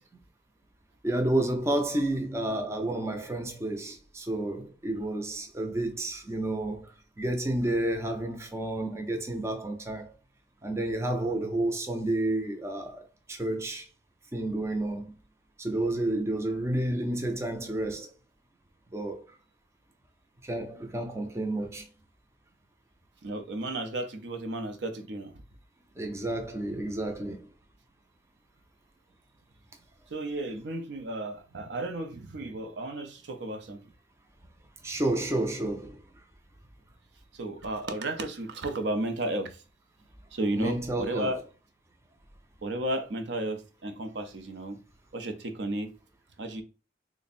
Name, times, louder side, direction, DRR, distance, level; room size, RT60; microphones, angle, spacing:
voice 1, 1.0-10.1 10.6-13.9 14.3-15.1 15.6-18.1 18.9-19.2 20.4-21.8 26.0-27.5 34.8-36.0 40.6-41.4, right 1 dB, 15° right, 0.4 m, -30 dB
voice 2, 23.2-25.4 30.1-33.8 37.3-39.6 40.3-41.4 42.6-44.8 45.1-45.9 46.4-46.6, right 1 dB, 65° right, 0.6 m, -33 dB
3.4 x 2.1 x 4.1 m
head